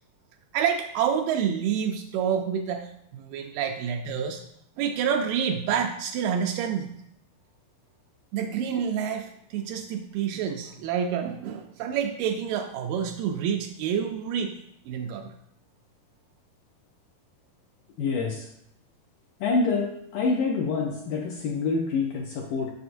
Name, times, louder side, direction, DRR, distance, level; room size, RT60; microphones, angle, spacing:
voice 1, 0.5-4.4 4.8-6.9 8.3-14.6 14.9-15.3, right 8 dB, 90° right, 4 dB, 1.9 m, -28 dB
voice 2, 18.0-18.5 19.4-22.7, left 4 dB, 80° left, 0 dB, 2.0 m, -26 dB
8.0 x 6.2 x 2.5 m, 0.72 s
omnidirectional pair, 4.5 m